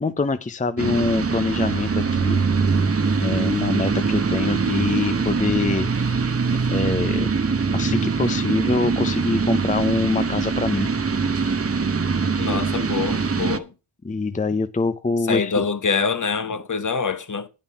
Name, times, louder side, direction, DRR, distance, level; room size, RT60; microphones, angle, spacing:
voice 1, 0.0-2.4 3.2-5.9 6.7-7.4 7.7-10.9 11.3-11.5 12.5-12.6 14.0-15.5, left 3 dB, 15° left, 0.7 m, -24 dB
sound 1, 0.8-13.6, right 5 dB, 30° right, 1.0 m, -23 dB
voice 2, 12.4-13.7 15.3-17.5, left 5 dB, 40° left, 1.1 m, -25 dB
9.0 x 7.4 x 5.8 m
cardioid pair, 55°, 45 cm